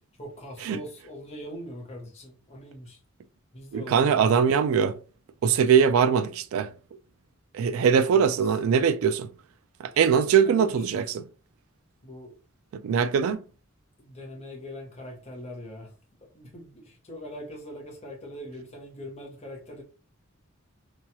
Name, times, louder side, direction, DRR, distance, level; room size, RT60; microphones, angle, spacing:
voice 1, 0.2-3.0 3.5-4.3 7.8-8.6 9.8-11.3 12.0-12.3 14.0-15.9 16.3-19.8, equal, 30° left, 0.9 m, -42 dB
voice 2, 3.7-5.0 5.4-6.7 7.5-9.3 10.0-11.2 12.8-13.4, right 7 dB, 80° right, 0.3 m, -21 dB
2.9 x 2.3 x 2.7 m
head